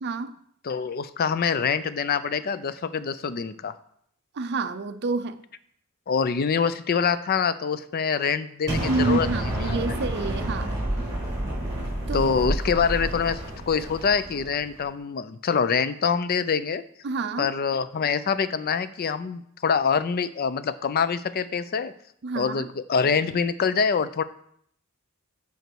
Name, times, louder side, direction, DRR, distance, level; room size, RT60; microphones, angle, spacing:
voice 1, 0.0-0.3 4.3-5.4 8.9-10.8 12.1-12.3 17.0-17.5 22.2-22.7, right 3 dB, 50° right, 0.5 m, -28 dB
voice 2, 0.6-3.7 6.1-9.3 9.7-9.8 12.1-16.8 17.4-21.9 22.4-24.2, left 6 dB, 45° left, 0.4 m, -25 dB
Explosion, 8.7-14.7, right 1 dB, 20° right, 3.7 m, -29 dB
8.0 x 5.1 x 4.6 m
head